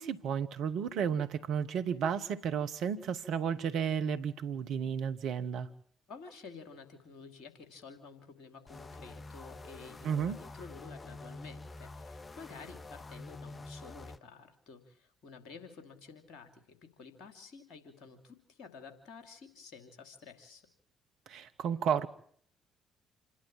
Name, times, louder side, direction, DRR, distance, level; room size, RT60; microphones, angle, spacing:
voice 1, 0.0-5.7 10.0-10.4 21.3-22.1, right 7 dB, 65° right, 10 dB, 1.0 m, -32 dB
voice 2, 6.1-20.6, left 5 dB, 65° left, 6 dB, 2.8 m, -51 dB
sound 1, 8.7-14.2, left 2 dB, 30° left, 0.9 m, -47 dB
27.5 x 11.5 x 8.7 m, 0.62 s
figure-of-eight pair, 45°, 0 cm